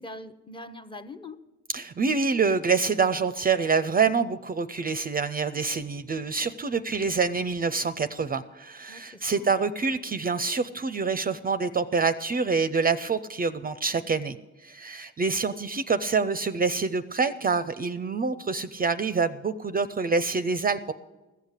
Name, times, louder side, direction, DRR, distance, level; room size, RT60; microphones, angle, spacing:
voice 1, 0.0-1.4 8.9-9.6, left 2 dB, 15° left, 0.7 m, -42 dB
voice 2, 1.7-14.4 14.6-20.9, right 4 dB, 30° right, 0.5 m, -26 dB
15.0 x 6.5 x 9.7 m
cardioid pair, 90°, 30 cm